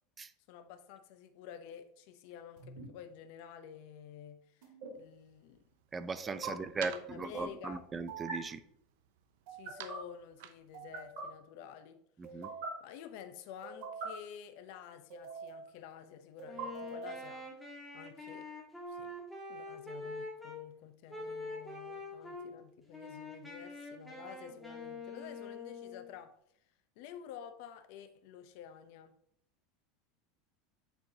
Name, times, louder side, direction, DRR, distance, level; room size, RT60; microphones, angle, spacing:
voice 1, 0.5-4.7 4.9-5.6 6.5-7.8 9.5-12.0 12.3-12.4 12.8-17.5 17.9-18.5 18.9-19.1 19.5-26.3 27.0-29.1, left 9 dB, 60° left, 10 dB, 0.6 m, -50 dB
sound 1, 2.6-2.8 4.6-4.9 6.2-6.5 8.1-8.4 9.5-10.0 10.7-11.2 12.2-12.7 13.6-14.1 15.1-15.7 16.4-17.2, right 5 dB, 60° right, 2.4 m, -43 dB
sound 2, 4.9-11.4, right 11 dB, 80° right, 0.6 m, -53 dB
voice 2, 5.9-8.6 12.2-12.5, right 4 dB, 20° right, 13 dB, 0.4 m, -38 dB
Wind instrument woodwind instrument, 16.4-20.6 21.1-22.5 22.9-26.1, left 2 dB, 5° left, 1.5 m, -45 dB
9.0 x 4.5 x 2.8 m, 0.71 s
supercardioid pair, 140°, 0 cm